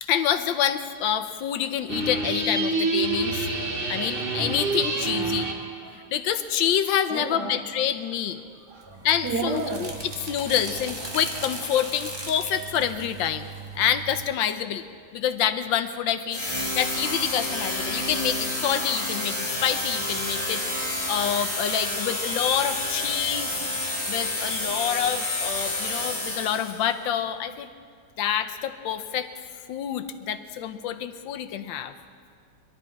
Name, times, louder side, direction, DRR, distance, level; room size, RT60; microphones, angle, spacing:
voice 1, 0.0-3.5 3.9-5.5 6.1-8.4 9.0-9.9 10.3-13.5 13.7-14.9 15.1-23.5 24.1-27.7 28.2-29.3 29.7-31.9, left 9 dB, 85° left, 9 dB, 1.4 m, -27 dB
sound 1, 1.9-5.7, right 3 dB, 35° right, 1.4 m, -27 dB
voice 2, 5.3-6.1 7.1-7.6 8.6-10.1, right 4 dB, 60° right, 5 dB, 1.5 m, -34 dB
sound 2, 8.8-14.3, right 2 dB, 15° right, 1.3 m, -37 dB
sound 3, 16.3-26.9, left 1 dB, 30° left, 3.8 m, -29 dB
21.5 x 12.5 x 4.6 m, 2.1 s
omnidirectional pair, 2.1 m